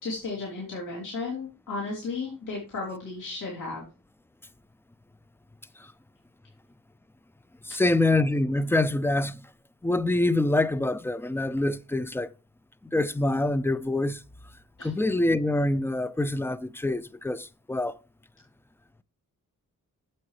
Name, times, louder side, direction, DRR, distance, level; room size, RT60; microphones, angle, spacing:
voice 1, 0.0-3.9 7.7-7.8 14.8-14.9, left 3 dB, 65° left, 3.0 m, -34 dB
voice 2, 7.7-9.4 9.8-12.3 12.9-14.2 14.8-17.9, left 2 dB, 5° left, 0.3 m, -25 dB
8.5 x 7.5 x 3.2 m
wide cardioid pair, 130°, 33 cm